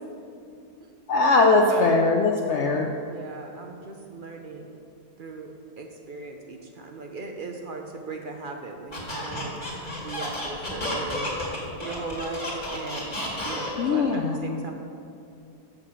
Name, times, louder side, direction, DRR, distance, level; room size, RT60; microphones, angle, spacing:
voice 1, 1.1-2.9 13.8-14.6, left 3 dB, 60° left, 1 dB, 0.8 m, -21 dB
voice 2, 3.0-4.7 5.2-9.6 10.0-11.3 11.8-13.1 13.4-14.7, right 3 dB, 50° right, 3 dB, 0.6 m, -38 dB
Squeak, 8.9-14.0, left 1 dB, 35° left, 2.3 m, -32 dB
6.7 x 6.4 x 7.3 m, 2.5 s
omnidirectional pair, 1.5 m